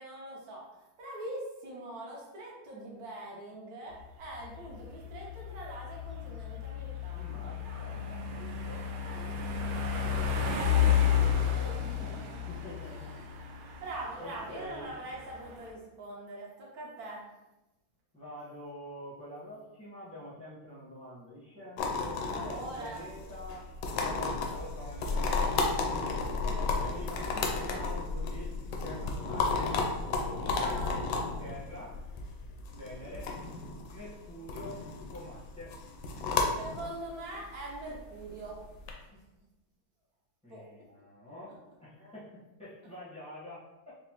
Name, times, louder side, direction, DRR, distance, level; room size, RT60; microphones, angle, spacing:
voice 1, 0.0-8.0 9.0-12.4 12.8-13.5 13.8-17.3 22.3-23.0 24.0-24.3 30.6-30.9 36.5-38.6 39.1-39.2 40.5-40.7, right 1 dB, 65° right, -3 dB, 0.9 m, -44 dB
sound 1, 4.0-15.7, left 8 dB, 85° right, 1.4 m, -32 dB
voice 2, 7.1-8.9 9.3-10.0 10.4-10.9 11.6-11.7 12.0-13.1 14.2-14.9 18.1-23.7 24.0-25.9 26.4-29.8 30.2-31.1 31.4-32.0 32.7-33.4 33.9-34.8 35.1-35.8 40.4-43.9, left 1 dB, 10° left, -10 dB, 0.4 m, -46 dB
sound 2, 21.8-38.9, left 4 dB, 75° left, 1.0 m, -33 dB
5.0 x 2.0 x 2.9 m, 1.0 s
omnidirectional pair, 2.3 m